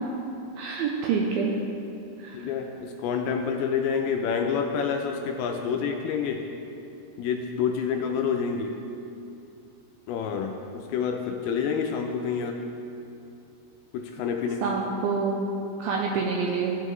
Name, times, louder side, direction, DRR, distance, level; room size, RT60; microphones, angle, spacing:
voice 1, 0.6-1.5 2.2-2.5 14.6-15.4 15.8-16.8, right 5 dB, 85° right, 0 dB, 2.2 m, -27 dB
voice 2, 2.3-6.4 7.2-8.7 10.1-12.6 13.9-14.7, left 6 dB, 80° left, 3 dB, 2.3 m, -28 dB
15.0 x 5.5 x 3.1 m, 2.7 s
omnidirectional pair, 4.7 m